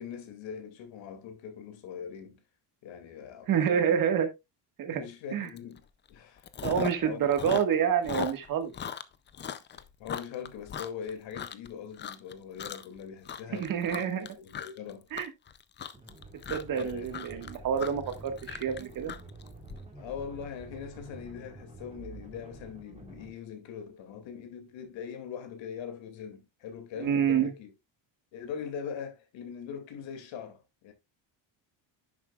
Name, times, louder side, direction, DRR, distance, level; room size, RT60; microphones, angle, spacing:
voice 1, 0.0-2.4 2.8-4.0 4.9-5.8 6.1-6.5 7.0-7.3 9.7-13.7 14.0-14.1 14.4-15.1 16.7-17.1 20.0-27.7 28.3-30.9, left 7 dB, 75° left, 2.4 m, -41 dB
voice 2, 3.5-4.3 4.8-5.0 5.3-5.5 6.6-8.7 13.5-14.3 15.1-15.3 16.5-19.2 27.0-27.5, right 8 dB, 45° right, 1.6 m, -28 dB
Chewing mastication, 5.6-5.8 6.1-7.1 7.3-11.7 12.0-12.3 12.6-13.0 13.2-19.8, left 8 dB, 25° left, 0.4 m, -38 dB
sound 1, 15.9-23.3, right 2 dB, 15° right, 2.5 m, -48 dB
10.5 x 7.2 x 2.3 m
cardioid pair, 175°, 45 cm